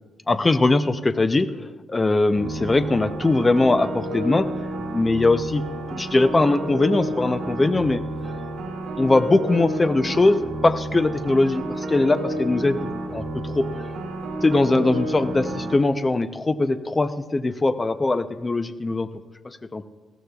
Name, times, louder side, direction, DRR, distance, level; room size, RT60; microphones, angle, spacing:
voice 1, 0.3-1.5 1.9-4.5 4.9-5.6 5.9-8.0 9.0-13.9 14.4-19.1 19.4-19.9, left 2 dB, 15° left, 10 dB, 0.5 m, -21 dB
sound 1, 2.3-15.8, right 1 dB, 70° right, 2.3 m, -31 dB
19.5 x 15.0 x 2.3 m, 1.3 s
cardioid pair, 165°, 0 cm